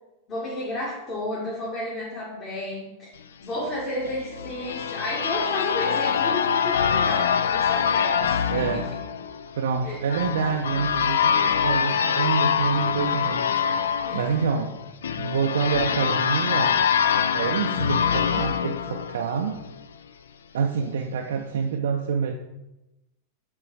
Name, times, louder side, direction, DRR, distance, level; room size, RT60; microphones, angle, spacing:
voice 1, 0.3-3.1 3.4-8.9 9.8-10.0 14.1-14.4, left 1 dB, 30° left, -6 dB, 1.9 m, -32 dB
sound 1, 4.0-19.7, left 7 dB, 65° left, 0.3 m, -24 dB
voice 2, 8.5-8.9 9.6-13.8 14.1-14.8 15.2-16.8 17.3-19.6 20.5-22.4, right 6 dB, 60° right, 3 dB, 0.4 m, -27 dB
7.7 x 3.8 x 4.7 m, 0.96 s
figure-of-eight pair, 90°, 0 cm